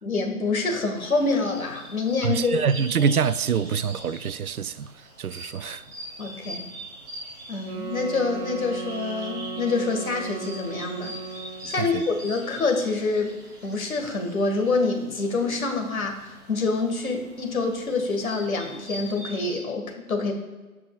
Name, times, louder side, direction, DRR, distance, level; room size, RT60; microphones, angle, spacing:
voice 1, 0.0-2.6 6.2-6.7 7.5-11.1 11.7-13.4 13.6-20.3, left 3 dB, 70° left, 2.0 m, -26 dB
sound 1, 0.9-19.6, right 1 dB, 15° right, 0.9 m, -43 dB
voice 2, 2.2-4.9 5.2-5.8 11.6-12.0, right 6 dB, 75° right, 0.6 m, -25 dB
sound 2, 7.6-11.8, right 4 dB, 45° right, 2.0 m, -36 dB
18.0 x 6.1 x 2.4 m
figure-of-eight pair, 150°, 44 cm